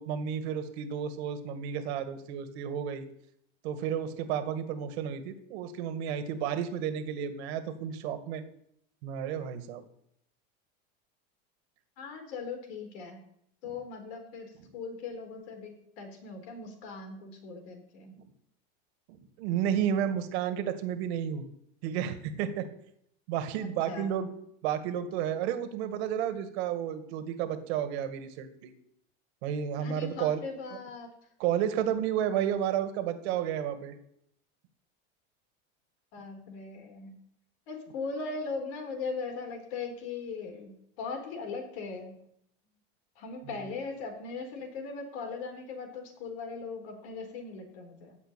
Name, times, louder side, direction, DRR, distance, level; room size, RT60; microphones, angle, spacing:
voice 1, 0.0-3.1 3.6-8.4 9.0-9.8 13.6-13.8 14.6-14.7 19.1-21.5 21.8-22.7 23.3-24.3 24.6-28.7 29.4-30.4 31.4-34.0 43.5-43.6, right 9 dB, 80° right, 9 dB, 2.0 m, -32 dB
voice 2, 12.0-13.2 13.6-18.1 23.6-24.3 29.8-31.1 36.1-37.2 37.7-42.2 43.2-48.2, left 4 dB, 85° left, 4 dB, 4.0 m, -39 dB
15.5 x 5.5 x 9.1 m, 0.73 s
supercardioid pair, 125°, 32 cm